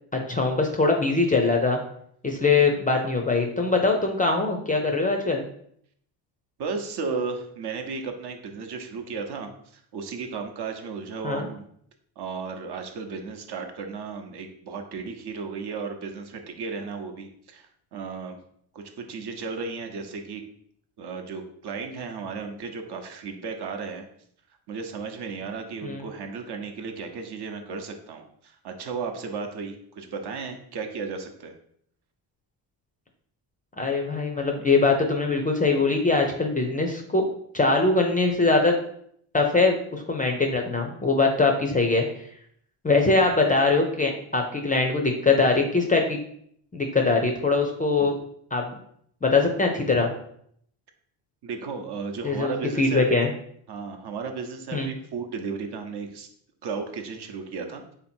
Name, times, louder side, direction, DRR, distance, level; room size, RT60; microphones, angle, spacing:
voice 1, 0.1-1.8 2.2-5.5 11.2-11.5 25.8-26.0 33.8-37.2 37.5-38.8 39.3-42.0 42.8-46.2 46.7-48.1 48.5-48.8 49.2-50.1 52.2-53.3 54.7-54.9, left 3 dB, 20° left, 2 dB, 0.4 m, -22 dB
voice 2, 6.6-11.7 12.2-18.4 18.7-20.4 21.0-24.0 24.7-31.5 51.4-53.2 53.7-56.3 56.6-57.9, right 5 dB, 55° right, 4 dB, 0.8 m, -34 dB
3.5 x 2.8 x 4.3 m, 0.67 s
cardioid pair, 100°, 48 cm